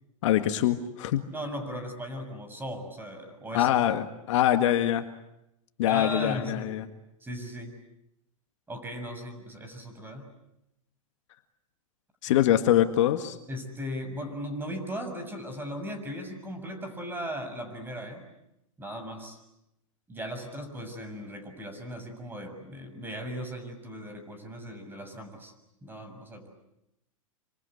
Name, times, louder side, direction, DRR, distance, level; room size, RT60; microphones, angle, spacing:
voice 1, 0.2-1.2 3.5-5.1 5.8-6.9 12.2-13.4, left 12 dB, 60° left, 8 dB, 1.9 m, -24 dB
voice 2, 1.3-3.7 5.9-6.7 7.2-7.8 8.7-10.3 12.3-12.4 13.5-18.2 18.8-19.4 20.1-25.5 25.8-26.5, equal, 10° right, 7 dB, 6.9 m, -37 dB
27.5 x 26.0 x 8.1 m, 0.85 s
hypercardioid pair, 105°, 17 cm